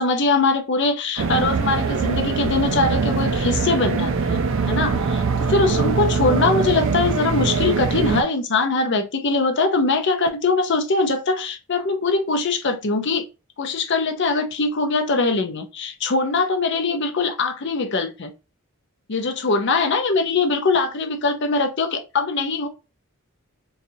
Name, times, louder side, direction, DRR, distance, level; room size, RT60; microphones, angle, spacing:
voice 1, 0.0-13.2 13.6-18.3 19.1-22.7, left 3 dB, 55° left, 0.7 m, -22 dB
sound 1, 1.2-8.2, right 5 dB, 65° right, 0.4 m, -22 dB
4.1 x 2.4 x 2.7 m
head